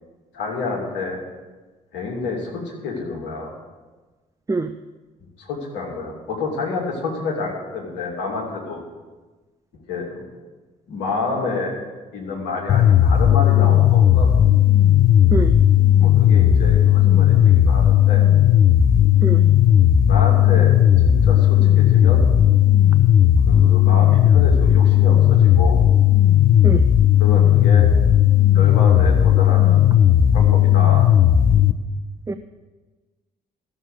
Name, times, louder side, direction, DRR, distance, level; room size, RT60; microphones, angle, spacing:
voice 1, 0.3-1.2 1.9-3.5 5.4-8.8 9.9-10.2 10.9-11.7 12.1-14.3 16.0-18.3 19.9-20.7 21.0-22.3 23.5-25.8 27.2-27.9 28.5-29.8 30.3-31.1, left 4 dB, 65° left, -2 dB, 2.8 m, -28 dB
voice 2, 4.5-4.7 15.3-15.5 19.2-19.5 26.6-26.9 32.3-32.4, right 3 dB, 15° right, 9 dB, 0.5 m, -24 dB
sound 1, 12.7-31.7, left 10 dB, 45° left, 0.6 m, -14 dB
14.0 x 6.8 x 6.6 m, 1.2 s
figure-of-eight pair, 40°, 21 cm